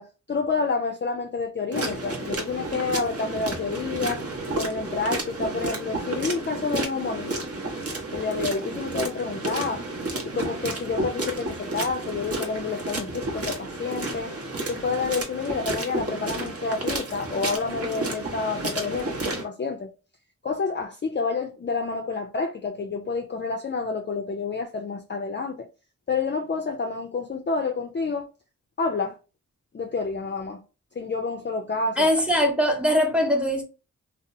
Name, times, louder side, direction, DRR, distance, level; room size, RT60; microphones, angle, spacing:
voice 1, 0.0-4.2 4.5-7.5 8.1-9.9 10.2-14.3 14.7-19.9 20.4-25.7 26.1-28.3 28.8-29.2 29.7-30.6 31.0-32.0, left 4 dB, 35° left, 0.4 m, -29 dB
sound 1, 1.7-19.4, right 2 dB, 45° right, 0.8 m, -31 dB
voice 2, 32.0-33.6, equal, 5° right, 0.8 m, -21 dB
2.7 x 2.0 x 2.5 m
cardioid pair, 55°, 33 cm